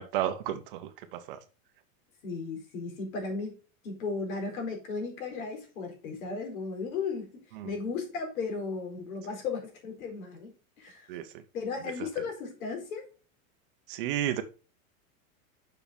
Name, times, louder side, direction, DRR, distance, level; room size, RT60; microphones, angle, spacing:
voice 1, 0.0-1.4 7.6-7.7 11.1-11.3 13.9-14.4, right 11 dB, 40° right, 0.8 m, -32 dB
voice 2, 2.2-3.6 3.8-11.1 11.5-13.0, left 4 dB, 70° left, 4.4 m, -35 dB
7.2 x 5.8 x 5.2 m
supercardioid pair, 175°, 43 cm